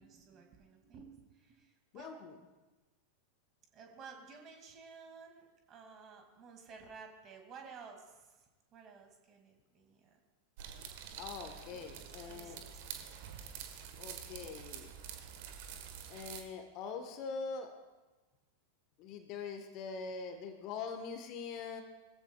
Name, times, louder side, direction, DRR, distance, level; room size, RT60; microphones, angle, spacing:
voice 1, 0.0-2.1 3.7-10.2 11.1-12.8, right 5 dB, 30° right, 3 dB, 2.5 m, -54 dB
voice 2, 1.9-2.4 11.2-12.6 14.0-14.9 16.1-17.7 19.0-21.8, left 5 dB, 40° left, 6 dB, 1.4 m, -43 dB
sound 1, 10.6-16.4, right 8 dB, 50° right, 1.5 m, -47 dB
21.5 x 15.0 x 2.4 m, 1.2 s
figure-of-eight pair, 90°, 0 cm